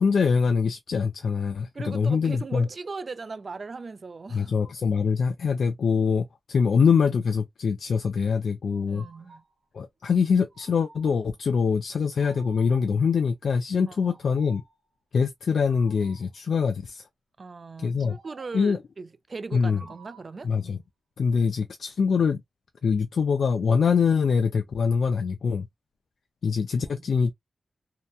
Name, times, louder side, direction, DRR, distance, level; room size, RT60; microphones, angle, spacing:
voice 1, 0.0-2.7 4.3-9.0 9.7-14.6 15.1-17.0 17.8-18.2 18.5-18.8 19.5-19.8 20.4-20.8 21.2-22.4 22.8-25.7 26.4-27.3, left 5 dB, 80° left, 0.3 m, -24 dB
voice 2, 1.7-4.5 8.9-9.4 13.9-14.2 17.4-20.5, right 4 dB, 50° right, 0.3 m, -38 dB
sound 1, 8.7-9.5 10.5-11.4 12.2-13.1 13.9-14.8 15.7-16.4 18.0-18.7 19.7-20.5, right 4 dB, 85° right, 0.8 m, -53 dB
2.8 x 2.1 x 2.3 m
wide cardioid pair, 80°, 0 cm